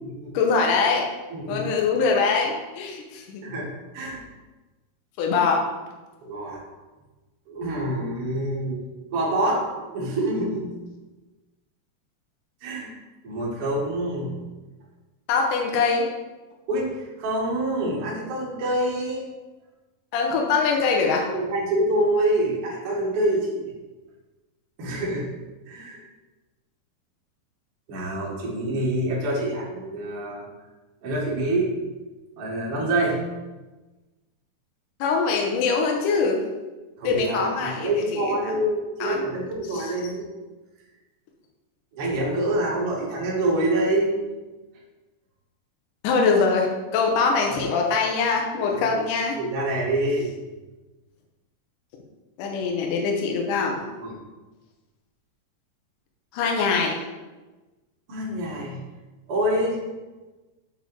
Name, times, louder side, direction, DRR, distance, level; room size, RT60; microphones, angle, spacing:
voice 1, 0.3-1.1 1.5-3.4 4.0-4.1 5.2-5.6 15.3-16.1 20.1-21.3 35.0-36.4 37.0-38.6 39.0-39.2 39.7-39.9 46.0-49.4 52.4-53.8 56.3-57.0, left 4 dB, 70° left, 0 dB, 2.0 m, -23 dB
voice 2, 1.3-1.7 3.4-3.7 3.9-4.2 6.2-6.6 7.5-10.7 12.6-12.9 13.2-14.4 16.7-19.2 21.3-23.5 24.8-25.2 25.7-26.0 27.9-30.4 31.0-31.7 32.4-33.2 37.0-40.3 41.9-44.2 47.4-47.8 48.6-49.0 49.4-50.3 54.0-54.1 58.1-58.8 59.3-59.8, right 1 dB, 50° right, -4 dB, 1.8 m, -26 dB
6.4 x 4.7 x 4.6 m, 1.2 s
omnidirectional pair, 4.6 m